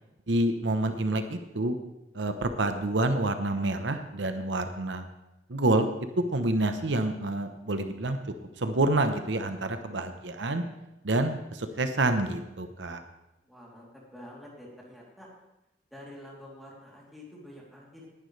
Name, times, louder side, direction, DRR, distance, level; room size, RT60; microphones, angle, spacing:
voice 1, 0.3-1.8 2.1-5.0 5.5-5.9 6.2-8.2 8.6-10.6 11.0-13.0, right 2 dB, 85° right, 8 dB, 1.0 m, -28 dB
voice 2, 13.4-15.3 15.9-18.1, left 1 dB, ahead, -5 dB, 3.2 m, -48 dB
19.0 x 10.5 x 3.4 m, 0.95 s
head